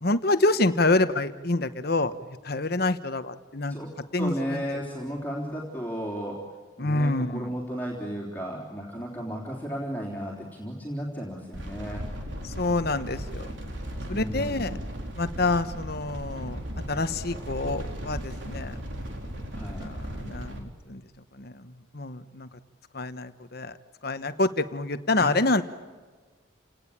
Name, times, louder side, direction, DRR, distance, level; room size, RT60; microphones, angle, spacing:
voice 1, 0.0-2.1 2.4-3.8 4.1-4.6 6.8-7.5 12.6-13.5 14.1-14.8 15.2-16.6 16.9-18.8 19.8-21.0 21.4-21.6 21.9-22.5 22.9-23.7 24.0-25.6, left 2 dB, 50° left, 11 dB, 1.2 m, -27 dB
voice 2, 3.7-6.4 6.8-12.1 14.1-14.9 19.5-19.9 25.2-25.6, equal, 10° left, -3 dB, 3.7 m, -34 dB
sound 1, 11.5-20.6, equal, 65° right, 4.0 m, -36 dB
29.5 x 18.5 x 8.8 m, 1.5 s
head